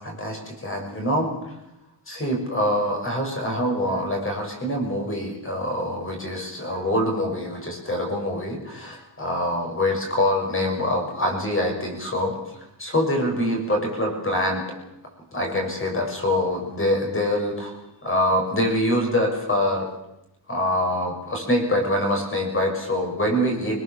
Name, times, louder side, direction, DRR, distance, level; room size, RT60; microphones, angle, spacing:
voice 1, 0.0-1.6 2.1-12.4 12.8-14.6 15.3-17.7 18.0-19.9 20.5-23.8, left 1 dB, 30° left, 1 dB, 6.2 m, -25 dB
24.0 x 20.5 x 7.2 m, 0.88 s
wide cardioid pair, 180°, 43 cm